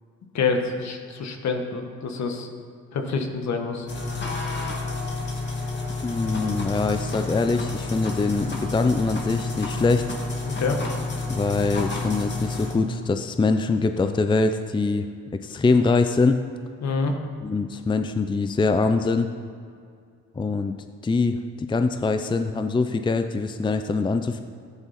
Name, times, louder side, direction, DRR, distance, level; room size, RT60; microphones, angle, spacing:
voice 1, 0.3-2.5 2.9-3.9 10.4-10.8 16.8-17.1, left 4 dB, 65° left, 4 dB, 1.5 m, -26 dB
sound 1, 3.9-12.7, left 3 dB, 35° left, 2.3 m, -30 dB
voice 2, 6.0-10.0 11.3-15.1 15.3-16.4 17.4-19.3 20.4-20.7 21.0-24.4, left 3 dB, 15° left, 8 dB, 0.5 m, -23 dB
13.5 x 9.8 x 4.3 m, 2.2 s
cardioid pair, 90°, 30 cm